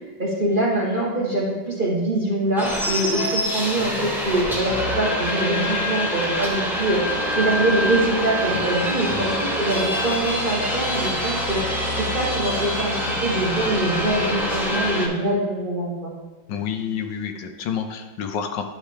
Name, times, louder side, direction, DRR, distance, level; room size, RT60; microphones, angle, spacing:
voice 1, 0.2-12.9 13.2-16.1, right 1 dB, 35° right, -4 dB, 0.9 m, -24 dB
sound 1, 2.6-15.1, equal, ahead, 0.5 m, -25 dB
voice 2, 8.5-9.5 16.5-18.6, left 7 dB, 75° left, 6 dB, 1.2 m, -29 dB
10.5 x 4.8 x 3.3 m, 1.3 s
omnidirectional pair, 2.1 m